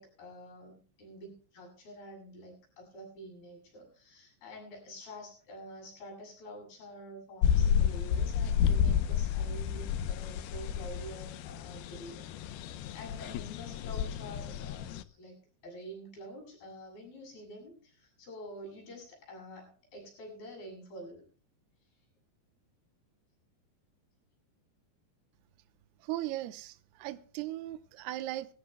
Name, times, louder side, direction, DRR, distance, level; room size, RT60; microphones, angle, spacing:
voice 1, 0.0-15.4 15.6-21.3, equal, 55° left, 9.8 m, -48 dB
sound 1, 7.4-15.0, left 8 dB, 75° left, 2.4 m, -31 dB
voice 2, 26.0-28.5, right 15 dB, 75° right, 2.7 m, -38 dB
22.0 x 16.5 x 2.3 m
omnidirectional pair, 5.1 m